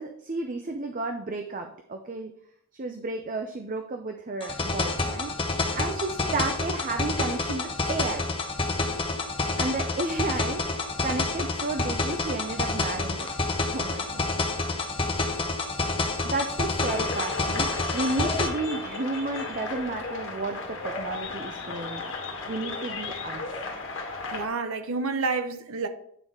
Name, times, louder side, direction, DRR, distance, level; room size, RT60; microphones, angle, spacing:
voice 1, 0.0-2.3 2.7-5.3 5.8-8.3 9.6-13.3 13.7-14.3 16.2-22.1 22.5-23.4, right 2 dB, 40° right, 0.6 m, -32 dB
sound 1, 4.4-18.5, left 3 dB, 25° left, 0.9 m, -28 dB
sound 2, 16.8-24.5, left 3 dB, 60° left, 1.4 m, -35 dB
voice 2, 24.3-25.9, right 4 dB, 65° right, 0.9 m, -29 dB
9.0 x 4.0 x 4.8 m
head